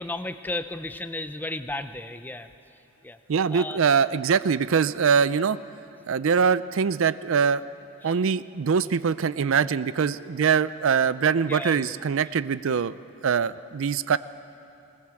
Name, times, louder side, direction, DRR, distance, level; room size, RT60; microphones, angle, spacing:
voice 1, 0.0-2.5 3.0-3.2 3.5-3.8 8.0-8.2 11.4-11.9, left 2 dB, 10° left, 10 dB, 0.6 m, -34 dB
voice 2, 3.3-5.6 6.1-7.6 8.0-12.9 13.2-14.2, right 6 dB, 65° right, 16 dB, 0.4 m, -23 dB
20.5 x 20.0 x 7.6 m, 2.6 s
head